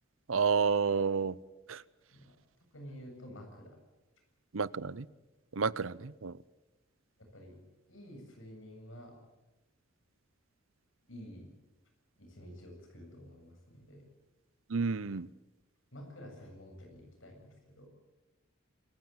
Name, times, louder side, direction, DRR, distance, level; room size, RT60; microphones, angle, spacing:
voice 1, 0.3-1.4 1.7-1.8 4.5-5.1 5.5-6.4 14.7-15.3, right 5 dB, 90° right, 20 dB, 0.7 m, -30 dB
voice 2, 2.7-3.8 7.3-7.6 7.9-9.1 11.0-11.5 12.2-14.1 15.9-17.9, equal, 75° left, 3 dB, 7.6 m, -50 dB
27.0 x 15.5 x 9.1 m, 1.0 s
head